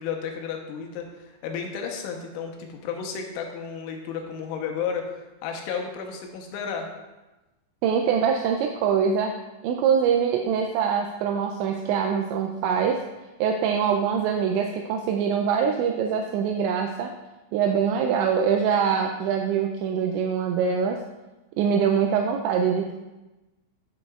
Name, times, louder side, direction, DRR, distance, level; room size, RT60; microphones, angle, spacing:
voice 1, 0.0-6.9, left 6 dB, 85° left, 2 dB, 3.3 m, -33 dB
voice 2, 7.8-9.3 9.6-13.0 13.4-17.1 17.5-21.0 21.6-22.9, right 7 dB, 85° right, 3 dB, 2.7 m, -23 dB
12.5 x 6.1 x 2.4 m, 1.1 s
omnidirectional pair, 5.4 m